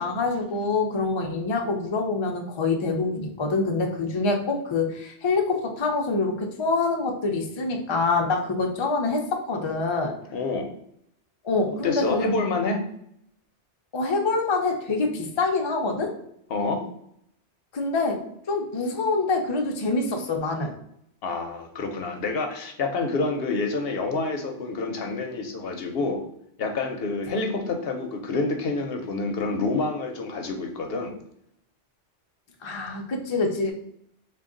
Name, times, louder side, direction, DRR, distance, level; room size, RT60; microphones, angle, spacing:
voice 1, 0.0-10.1 11.4-12.2 13.9-16.1 17.7-18.2 18.5-20.7 32.6-33.7, left 3 dB, 40° left, 2 dB, 0.4 m, -25 dB
voice 2, 10.3-10.7 11.8-12.8 16.5-16.8 21.2-26.2 26.6-31.1, left 3 dB, 65° left, 4 dB, 0.8 m, -27 dB
3.6 x 2.3 x 3.7 m, 0.73 s
omnidirectional pair, 1.2 m